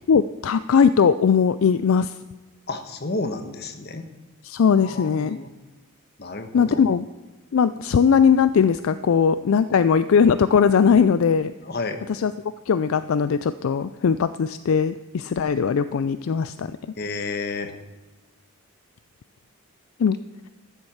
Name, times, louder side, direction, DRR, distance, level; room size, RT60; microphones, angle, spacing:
voice 1, 0.1-2.2 4.4-5.4 6.5-7.1 7.5-11.5 12.1-12.3 12.7-16.7 20.0-20.2, left 6 dB, 70° left, 14 dB, 0.4 m, -19 dB
voice 2, 2.7-4.0 4.8-5.5 6.2-6.8 11.6-12.0 17.0-17.7, left 3 dB, 45° left, 8 dB, 1.2 m, -31 dB
13.5 x 7.9 x 7.1 m, 1.1 s
head